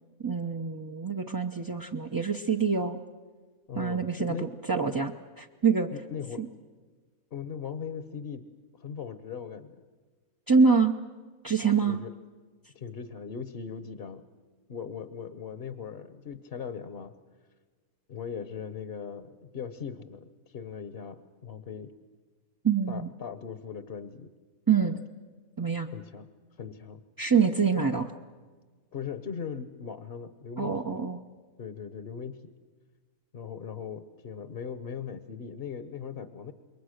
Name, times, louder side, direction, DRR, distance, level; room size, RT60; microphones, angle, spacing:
voice 1, 0.2-3.0 3.7-4.4 4.7-5.9 6.4-6.5 10.5-10.9 11.4-12.0 22.6-23.1 24.7-25.0 25.6-25.9 27.2-28.1 30.6-31.2, right 5 dB, 25° right, 2 dB, 0.4 m, -25 dB
voice 2, 3.7-4.5 5.9-6.5 7.3-8.4 8.8-9.8 11.8-12.1 12.7-14.2 14.7-17.1 18.1-21.9 22.9-24.3 25.9-26.3 26.6-27.0 28.9-31.0 31.6-32.5 33.3-36.5, left 6 dB, 50° left, 11 dB, 1.0 m, -39 dB
27.5 x 22.5 x 6.5 m, 1.5 s
omnidirectional pair, 1.5 m